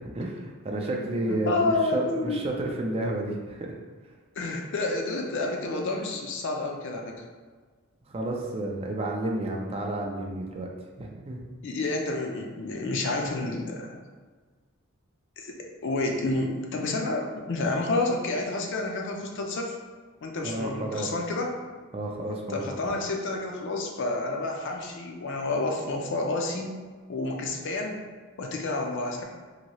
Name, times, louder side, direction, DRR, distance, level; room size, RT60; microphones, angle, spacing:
voice 1, 0.0-3.8 8.1-10.7 11.0-11.4 20.4-21.1 21.9-23.0, right 1 dB, 30° right, 1 dB, 0.4 m, -31 dB
voice 2, 0.9-2.4 4.4-7.2 11.6-14.0 15.4-15.6 15.8-19.8 20.2-21.5 22.5-26.8 27.1-28.1 28.4-29.2, left 2 dB, 60° left, 2 dB, 0.5 m, -29 dB
2.9 x 2.7 x 2.9 m, 1.5 s
head